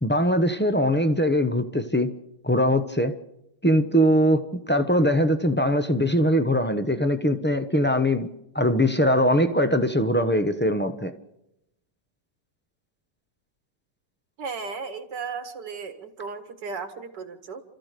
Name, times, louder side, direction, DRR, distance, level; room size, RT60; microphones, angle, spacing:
voice 1, 0.0-2.1 2.4-3.1 3.6-8.3 8.5-11.1, equal, 15° left, 8 dB, 0.4 m, -21 dB
voice 2, 14.4-17.6, right 5 dB, 75° right, 7 dB, 2.3 m, -35 dB
29.5 x 14.0 x 6.7 m, 0.85 s
omnidirectional pair, 1.9 m